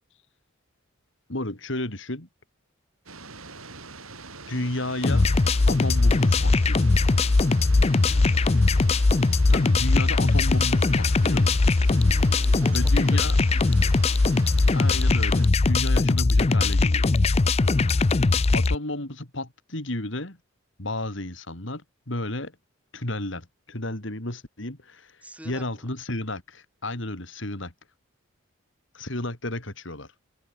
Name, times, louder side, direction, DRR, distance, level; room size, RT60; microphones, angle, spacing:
voice 1, 1.3-2.3 4.5-5.3 5.7-6.9 9.5-11.6 12.7-13.4 14.7-17.1 18.0-18.1 18.5-20.4 20.8-22.5 22.9-27.7 28.9-30.1, left 1 dB, 60° left, 3.3 m, -32 dB
sound 1, 3.1-15.5, right 4 dB, 85° right, 7.7 m, -43 dB
sound 2, 5.0-18.8, left 3 dB, 30° left, 0.4 m, -20 dB
voice 2, 7.9-8.7 12.0-12.8 13.1-13.3 13.5-13.9 17.6-18.3 25.2-25.9, right 1 dB, 5° right, 5.2 m, -47 dB
head